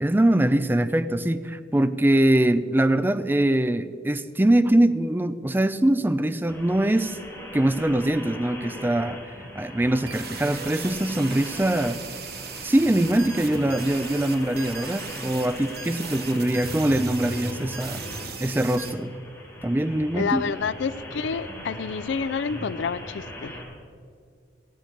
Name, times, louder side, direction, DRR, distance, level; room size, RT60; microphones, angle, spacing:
voice 1, 0.0-7.2 7.5-9.2 9.6-12.0 12.6-18.0 18.4-19.1 19.6-20.6, right 1 dB, 10° right, 12 dB, 0.4 m, -23 dB
sound 1, 6.5-23.6, equal, 15° left, 2.7 m, -39 dB
sound 2, 10.1-18.9, right 6 dB, 55° right, 1.1 m, -38 dB
voice 2, 20.1-23.5, left 5 dB, 75° left, 17 dB, 0.4 m, -28 dB
16.0 x 8.5 x 6.4 m, 2.2 s
head